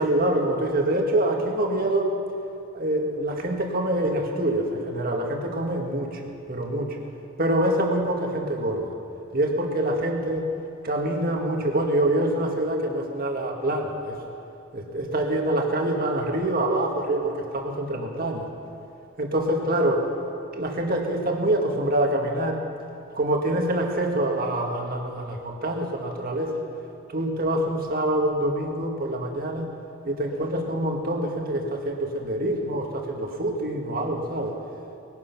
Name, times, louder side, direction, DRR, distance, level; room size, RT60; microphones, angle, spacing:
voice 1, 0.0-2.1 2.7-6.2 6.5-7.0 7.4-8.9 9.3-10.5 10.8-14.2 14.7-18.5 19.2-20.1 20.5-22.7 23.1-26.7 27.1-29.7 30.0-34.5, right 1 dB, 40° right, 1 dB, 1.8 m, -25 dB
20.5 x 11.0 x 6.0 m, 2.6 s
head